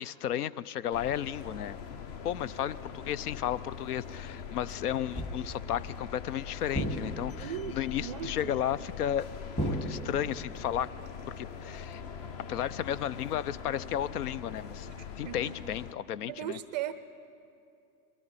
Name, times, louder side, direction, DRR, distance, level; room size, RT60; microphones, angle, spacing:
voice 1, 0.0-1.8 2.2-9.3 9.6-10.9 11.4-12.0 12.5-14.9 15.2-16.6, left 10 dB, 75° left, 19 dB, 0.6 m, -33 dB
sound 1, 0.9-15.9, left 6 dB, 30° left, 0.5 m, -42 dB
sound 2, 5.2-5.7 6.7-7.5 9.6-10.5, right 1 dB, 10° left, 1.3 m, -34 dB
voice 2, 7.4-8.6 14.9-15.5 16.3-16.9, right 10 dB, 30° right, 13 dB, 0.4 m, -38 dB
22.5 x 15.0 x 4.1 m, 2.5 s
hypercardioid pair, 125°, 46 cm